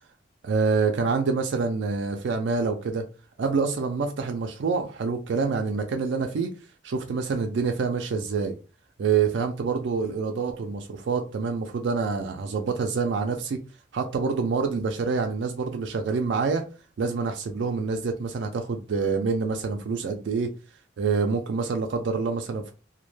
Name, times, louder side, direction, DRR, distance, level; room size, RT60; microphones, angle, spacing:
voice 1, 0.4-3.1 3.4-6.5 6.8-8.6 9.0-13.6 13.9-16.6 17.0-20.5 21.0-22.7, right 5 dB, 70° right, 0.3 m, -26 dB
2.2 x 2.1 x 3.0 m
head